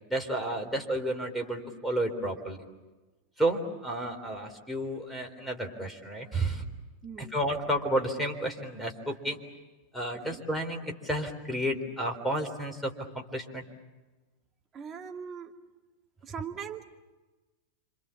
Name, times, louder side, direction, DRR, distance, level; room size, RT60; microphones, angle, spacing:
voice 1, 0.1-2.6 3.4-6.6 7.2-9.4 9.9-13.6, right 1 dB, 5° left, 3 dB, 3.9 m, -31 dB
voice 2, 7.0-7.4 7.6-7.7 10.3-10.4 14.7-15.5 16.2-16.8, right 7 dB, 25° right, 2 dB, 2.4 m, -40 dB
29.5 x 26.0 x 7.2 m, 1.2 s
figure-of-eight pair, 90°, 0 cm